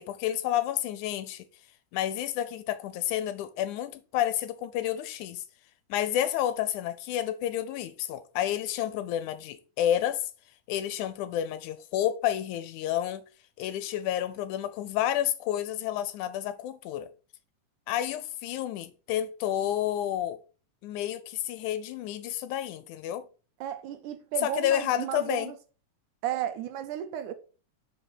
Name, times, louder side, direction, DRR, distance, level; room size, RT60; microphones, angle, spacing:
voice 1, 0.0-1.4 1.9-5.4 5.9-10.2 10.7-13.2 13.6-17.1 17.9-20.4 20.8-23.2 24.4-25.5, left 11 dB, 80° left, 2.0 m, -30 dB
voice 2, 23.6-25.6 26.2-27.3, right 10 dB, 75° right, 2.1 m, -33 dB
5.1 x 4.9 x 5.6 m
omnidirectional pair, 3.6 m